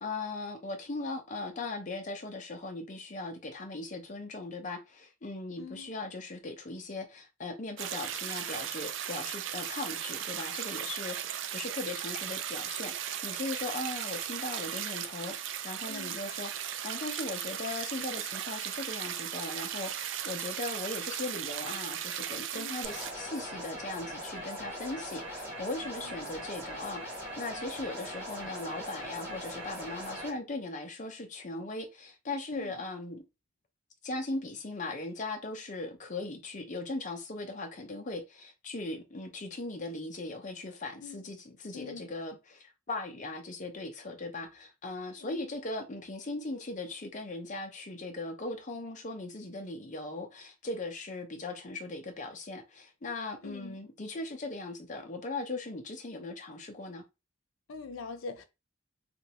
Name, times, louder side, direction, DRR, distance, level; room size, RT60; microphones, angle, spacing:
voice 1, 0.0-33.2 34.0-57.0, left 2 dB, 40° left, 0.6 m, -39 dB
voice 2, 5.6-5.9 15.9-16.2 22.5-22.8 26.0-26.4 32.5-32.8 41.0-41.3 41.7-42.1 45.2-45.6 53.4-53.8 57.7-58.4, left 4 dB, 90° left, 0.5 m, -44 dB
sound 1, 7.8-23.1, right 10 dB, 65° right, 0.3 m, -37 dB
sound 2, 22.8-30.3, equal, 10° right, 1.6 m, -40 dB
3.0 x 2.5 x 2.8 m
head